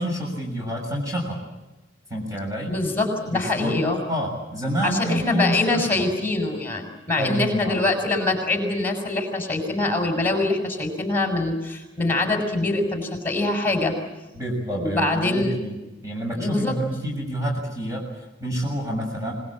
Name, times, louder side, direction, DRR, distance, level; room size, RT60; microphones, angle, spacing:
voice 1, 0.0-1.4 2.1-2.7 3.3-6.0 7.2-7.8 14.3-15.7 16.0-18.0 18.4-19.3, equal, 15° right, 0 dB, 7.2 m, -28 dB
voice 2, 2.7-4.0 4.8-13.9 14.7-15.6 16.4-16.7, left 2 dB, 10° left, 4 dB, 6.6 m, -24 dB
26.0 x 21.5 x 8.8 m, 1.0 s
head